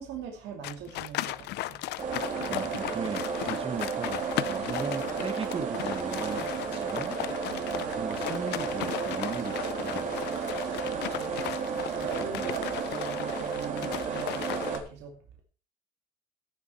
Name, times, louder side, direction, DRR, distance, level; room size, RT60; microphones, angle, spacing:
voice 1, 0.0-1.8 7.4-8.0 10.7-15.4, right 7 dB, 85° right, 2.5 m, -42 dB
sound 1, 0.6-14.8, left 16 dB, 80° left, 0.6 m, -36 dB
sound 2, 2.0-14.8, right 6 dB, 50° right, 3.3 m, -33 dB
voice 2, 2.5-7.1 8.0-10.3 12.2-12.5, right 5 dB, 35° right, 1.8 m, -38 dB
16.5 x 7.2 x 4.5 m
cardioid pair, 110°, 17 cm